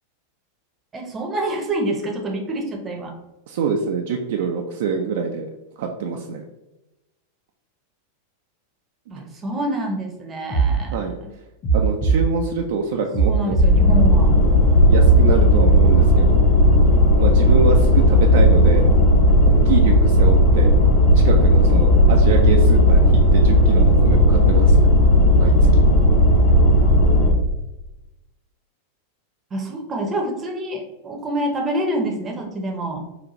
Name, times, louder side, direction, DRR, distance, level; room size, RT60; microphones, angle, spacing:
voice 1, 0.9-3.1 9.1-11.0 13.2-14.5 20.9-21.1 29.5-33.0, right 1 dB, 20° right, 2 dB, 0.6 m, -27 dB
voice 2, 3.5-5.5 5.8-6.4 9.2-9.3 10.9-11.2 11.7-13.6 14.9-16.4 17.2-18.9 19.5-20.8 21.2-24.9 25.4-25.8, right 5 dB, 55° right, 2 dB, 0.3 m, -25 dB
sound 1, 10.5-10.7 11.6-12.2 13.1-13.7 14.6-15.2, right 5 dB, 35° left, 1.1 m, -18 dB
sound 2, 13.6-27.3, equal, 50° left, 0.8 m, -14 dB
3.8 x 2.4 x 2.9 m, 0.98 s
figure-of-eight pair, 90°, 0 cm